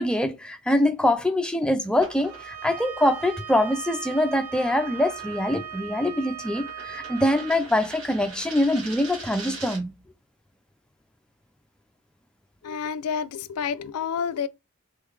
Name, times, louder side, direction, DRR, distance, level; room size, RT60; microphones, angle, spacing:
voice 1, 0.0-9.9, left 1 dB, 5° left, 0.4 m, -24 dB
sound 1, 1.9-10.0, right 3 dB, 60° right, 1.7 m, -43 dB
Bowed string instrument, 2.2-7.6, right 8 dB, 80° right, 0.9 m, -38 dB
voice 2, 12.6-14.5, left 7 dB, 90° left, 0.4 m, -29 dB
3.8 x 3.1 x 3.2 m
head